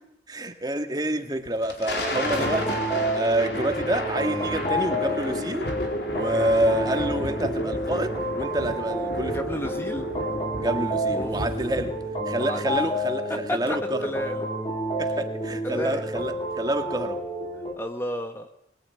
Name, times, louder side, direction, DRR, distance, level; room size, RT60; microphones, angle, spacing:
voice 1, 0.3-5.7 6.1-9.6 10.6-12.0 12.3-14.1 15.0-17.2, right 1 dB, 20° right, 1.9 m, -28 dB
Thunder, 1.5-12.2, left 1 dB, 65° left, 4.3 m, -32 dB
sound 1, 1.9-17.7, right 1 dB, 30° left, 5.1 m, -30 dB
voice 2, 9.3-10.1 11.1-11.3 12.5-12.6 13.3-14.5 15.6-16.0 17.7-18.5, equal, 15° left, 1.3 m, -32 dB
22.5 x 20.5 x 9.4 m
head